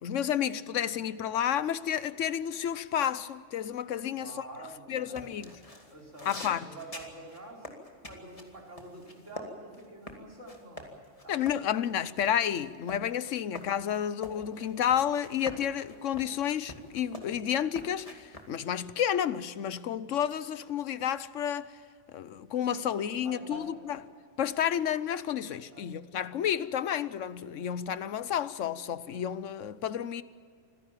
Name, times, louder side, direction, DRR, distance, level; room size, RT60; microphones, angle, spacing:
voice 1, 0.0-4.3 4.9-5.5 6.3-6.7 11.3-21.7 22.1-24.0 24.4-30.2, left 9 dB, 80° left, 1.1 m, -31 dB
voice 2, 4.1-5.3 5.9-11.6 22.8-23.8 25.5-25.9, right 2 dB, 80° right, 5.0 m, -48 dB
sound 1, 5.1-9.5 9.7-18.5, left 1 dB, 30° left, 2.5 m, -46 dB
26.0 x 16.5 x 7.4 m
omnidirectional pair, 1.3 m